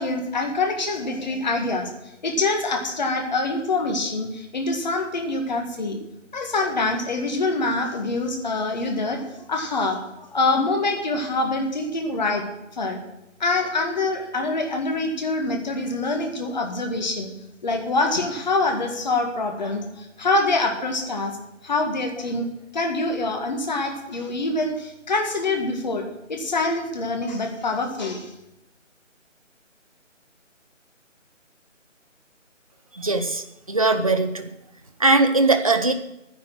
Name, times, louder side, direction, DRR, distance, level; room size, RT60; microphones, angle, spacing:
voice 1, 0.0-1.9 2.2-6.0 6.3-12.5 12.7-13.0 13.4-17.3 17.6-21.4 21.6-22.5 22.7-28.3, left 2 dB, 35° left, 4 dB, 1.8 m, -25 dB
voice 2, 32.9-34.5 35.0-35.9, right 3 dB, 30° right, 7 dB, 0.6 m, -20 dB
10.5 x 10.0 x 6.2 m, 0.90 s
figure-of-eight pair, 160°, 38 cm